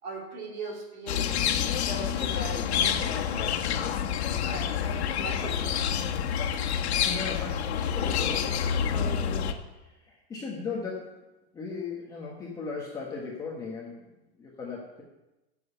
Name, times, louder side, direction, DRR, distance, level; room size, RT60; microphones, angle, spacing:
voice 1, 0.0-3.5 4.4-5.8, right 2 dB, 30° right, -1 dB, 2.8 m, -40 dB
sound 1, 1.1-9.5, left 8 dB, 85° left, 1.4 m, -28 dB
voice 2, 7.0-11.2 11.5-14.1 14.4-15.0, left 4 dB, 10° left, -3 dB, 1.1 m, -37 dB
15.5 x 7.1 x 5.5 m, 1.0 s
supercardioid pair, 175°, 32 cm